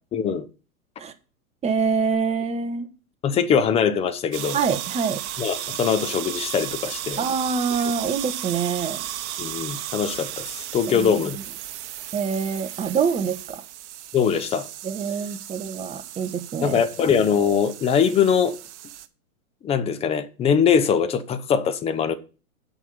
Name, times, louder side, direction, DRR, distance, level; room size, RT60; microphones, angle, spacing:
voice 1, 0.1-0.5 3.2-4.6 5.4-7.2 9.4-11.4 14.1-14.7 16.6-18.5 19.6-22.1, left 7 dB, 15° left, 0.6 m, -22 dB
voice 2, 1.6-2.9 4.5-5.2 7.2-9.0 10.9-11.4 12.1-13.6 14.8-16.8, right 6 dB, 15° right, 0.9 m, -25 dB
sound 1, 4.3-19.1, right 12 dB, 50° right, 1.0 m, -35 dB
8.4 x 5.4 x 6.9 m
hypercardioid pair, 115°, 43 cm